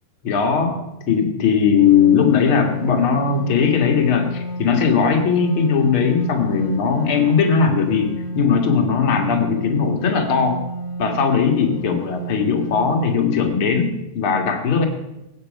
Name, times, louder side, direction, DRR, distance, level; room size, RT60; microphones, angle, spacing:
voice 1, 0.2-10.6 11.0-14.8, left 6 dB, 45° left, 3 dB, 1.7 m, -19 dB
sound 1, 1.8-13.2, right 1 dB, 85° left, 3.8 m, -31 dB
21.5 x 9.0 x 5.3 m, 0.95 s
omnidirectional pair, 4.8 m